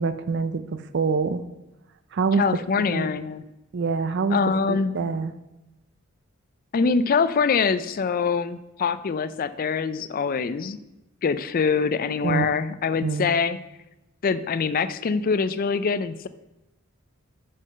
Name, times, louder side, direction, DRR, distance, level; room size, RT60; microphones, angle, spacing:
voice 1, 0.0-1.4 2.1-2.4 2.8-3.1 3.7-4.4 4.7-5.3 12.2-12.5 13.0-13.3, right 4 dB, 55° right, 11 dB, 0.4 m, -25 dB
voice 2, 2.4-3.4 4.3-4.9 6.7-10.8 11.2-13.6 14.2-16.3, left 5 dB, 40° left, 14 dB, 0.4 m, -24 dB
5.6 x 5.3 x 6.4 m, 0.95 s
head